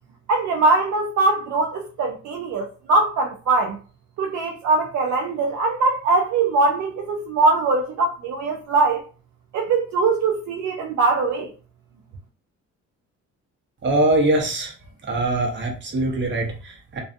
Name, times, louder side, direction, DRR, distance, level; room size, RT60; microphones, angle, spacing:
voice 1, 0.3-3.8 4.2-9.0 9.5-11.5, right 3 dB, 65° right, 0.5 m, -21 dB
voice 2, 13.8-14.7 15.0-17.0, right 2 dB, 40° right, 0.9 m, -22 dB
2.5 x 2.3 x 2.5 m
cardioid pair, 90°, 30 cm